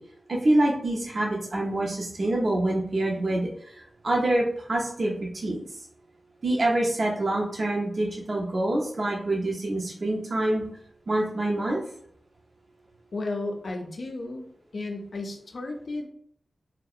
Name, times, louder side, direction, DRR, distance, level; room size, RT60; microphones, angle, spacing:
voice 1, 0.3-3.7 4.0-5.7 6.4-10.6 11.1-11.8, right 1 dB, 65° right, -2 dB, 0.5 m, -26 dB
voice 2, 13.1-14.4 14.7-16.1, left 2 dB, 70° left, 3 dB, 0.4 m, -33 dB
2.6 x 2.0 x 2.3 m, 0.65 s
cardioid pair, 45°, 0 cm